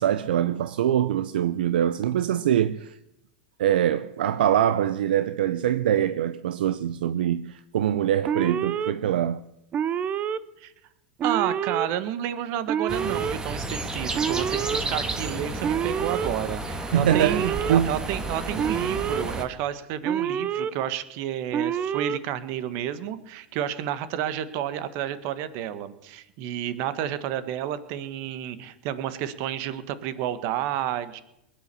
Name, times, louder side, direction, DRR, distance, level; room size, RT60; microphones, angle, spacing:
voice 1, 0.0-2.9 3.6-9.4 16.9-17.9, right 10 dB, 75° right, 0.6 m, -24 dB
Alarm, 8.3-8.9 9.7-10.4 11.2-11.9 12.7-13.3 14.1-14.8 15.6-16.3 17.1-17.8 18.6-19.2 20.0-20.7 21.5-22.2, right 8 dB, 30° right, 0.7 m, -27 dB
voice 2, 11.2-31.2, right 11 dB, 55° right, 1.5 m, -31 dB
sound 1, 12.9-19.4, right 2 dB, 15° right, 2.1 m, -32 dB
21.0 x 9.3 x 7.0 m
hypercardioid pair, 105°, 5 cm